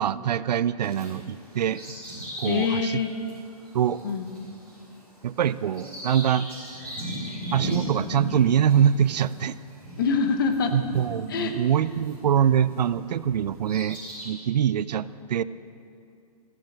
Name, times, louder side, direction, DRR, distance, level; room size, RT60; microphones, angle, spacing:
voice 1, 0.0-1.8 2.4-3.0 3.7-4.1 5.2-6.5 7.5-9.6 10.7-14.0 14.2-15.4, right 9 dB, 90° right, 17 dB, 0.5 m, -24 dB
Bird vocalization bird call bird song, 0.8-12.9 13.4-14.3, equal, 5° left, 3.9 m, -37 dB
voice 2, 2.5-3.1 4.0-4.3 10.0-10.7 11.3-11.5, left 5 dB, 35° left, 7 dB, 0.9 m, -24 dB
14.5 x 7.4 x 7.7 m, 2.5 s
hypercardioid pair, 175°, 20 cm